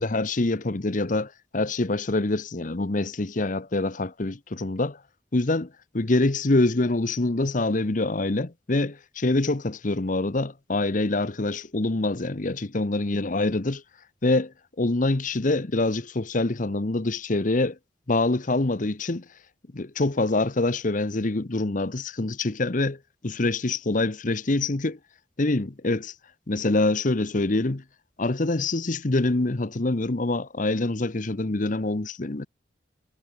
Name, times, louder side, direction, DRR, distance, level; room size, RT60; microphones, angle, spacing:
voice 1, 0.0-5.0 5.3-13.8 14.2-17.8 18.1-19.3 19.7-25.0 25.4-26.1 26.5-27.8 28.2-32.5, left 2 dB, 45° left, 1.0 m, -25 dB
head